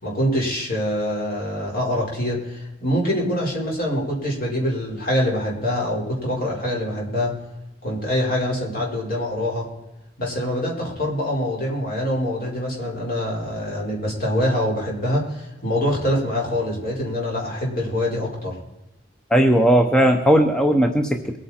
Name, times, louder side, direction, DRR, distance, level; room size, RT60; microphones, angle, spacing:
voice 1, 0.0-7.3 7.8-9.7 10.2-18.5, left 1 dB, 50° left, -2 dB, 4.7 m, -24 dB
voice 2, 19.3-21.4, equal, 5° left, 4 dB, 0.8 m, -17 dB
23.0 x 9.2 x 4.4 m, 0.94 s
head